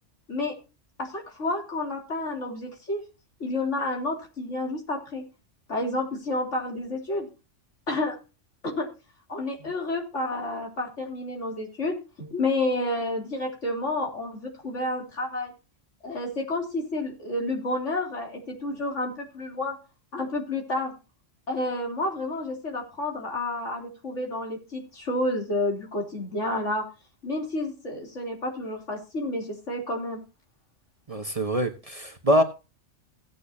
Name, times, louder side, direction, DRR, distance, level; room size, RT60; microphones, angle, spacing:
voice 1, 1.0-3.0 3.4-5.2 5.7-7.3 7.9-8.2 8.6-8.9 9.3-15.5 16.0-19.8 20.1-20.9 21.5-26.9 27.2-30.2, left 2 dB, 70° left, 3.7 m, -30 dB
voice 2, 31.1-32.4, equal, 30° right, 1.4 m, -24 dB
17.5 x 8.5 x 2.8 m
omnidirectional pair, 1.3 m